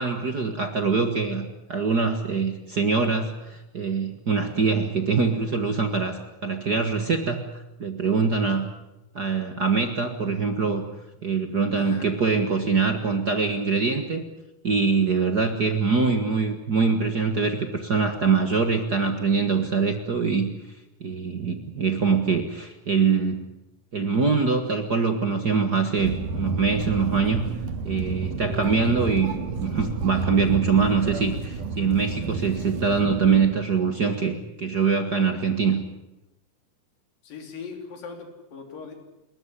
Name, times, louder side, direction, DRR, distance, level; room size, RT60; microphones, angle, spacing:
voice 1, 0.0-7.5 7.8-8.7 9.1-10.8 11.2-14.2 14.6-20.5 21.0-23.5 23.9-27.5 27.8-35.8, right 5 dB, 45° right, 7 dB, 1.3 m, -23 dB
voice 2, 11.8-12.1 37.2-38.9, left 5 dB, 80° left, 5 dB, 5.0 m, -39 dB
sound 1, 26.0-33.5, right 4 dB, 70° right, 3.3 m, -31 dB
29.0 x 14.0 x 10.0 m, 0.94 s
omnidirectional pair, 3.9 m